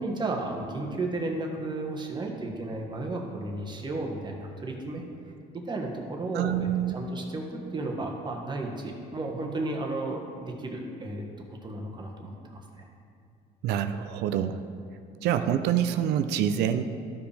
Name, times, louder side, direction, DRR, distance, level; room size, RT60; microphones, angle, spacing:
voice 1, 0.0-5.0 5.5-11.3 11.6-12.9, right 2 dB, 25° right, 1 dB, 1.3 m, -33 dB
voice 2, 6.3-6.9 13.6-14.6 15.2-16.8, right 9 dB, 80° right, 10 dB, 0.4 m, -26 dB
13.5 x 5.0 x 3.4 m, 2.5 s
cardioid pair, 110°, 17 cm